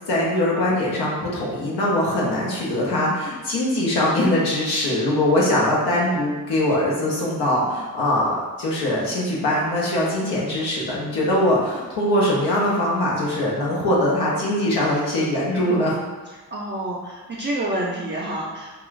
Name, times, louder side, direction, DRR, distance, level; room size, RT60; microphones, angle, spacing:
voice 1, 0.1-16.0, left 1 dB, 85° left, -5 dB, 0.7 m, -22 dB
voice 2, 16.5-18.7, right 1 dB, 30° right, -5 dB, 0.4 m, -28 dB
2.4 x 2.3 x 3.1 m, 1.2 s
cardioid pair, 65°, 38 cm